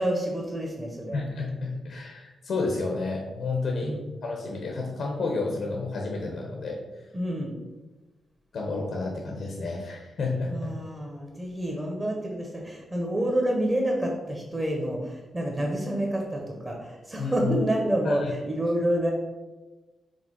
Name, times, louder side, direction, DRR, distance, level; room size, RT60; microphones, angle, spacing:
voice 1, 0.0-1.2 3.8-4.0 7.1-7.5 10.5-19.1, right 1 dB, 15° right, 0 dB, 0.9 m, -28 dB
voice 2, 1.1-7.1 8.5-10.7 17.2-17.6 18.0-18.3, left 3 dB, 60° left, 0 dB, 1.0 m, -31 dB
5.3 x 3.5 x 5.4 m, 1.2 s
wide cardioid pair, 160°, 0 cm